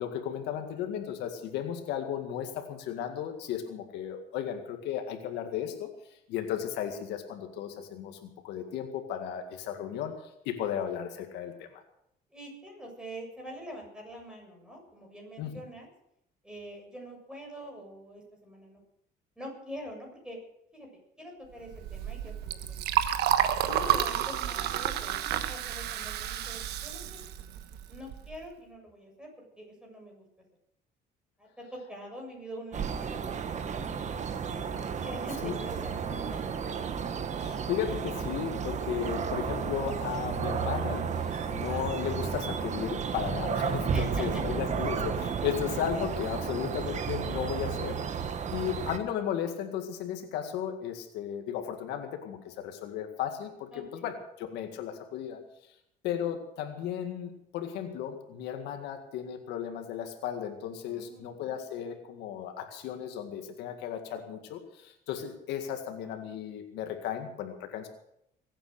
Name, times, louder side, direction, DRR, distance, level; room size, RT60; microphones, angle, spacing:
voice 1, 0.0-11.8 15.4-15.6 23.7-23.9 35.4-35.5 37.4-55.4 56.0-67.9, left 9 dB, 90° left, 6 dB, 2.0 m, -35 dB
voice 2, 12.3-15.9 16.4-18.8 19.4-20.4 20.7-20.9 21.2-22.8 23.6-27.2 27.9-30.2 31.4-34.4 34.8-36.8 43.9-44.6 45.3-45.5 53.7-54.1 60.9-61.3, equal, 5° right, 0 dB, 7.2 m, -44 dB
Liquid, 21.7-28.4, right 10 dB, 80° right, 1.3 m, -30 dB
sound 1, 32.7-49.0, right 6 dB, 45° right, 1.5 m, -33 dB
22.5 x 9.0 x 6.7 m, 0.77 s
cardioid pair, 110°, 17 cm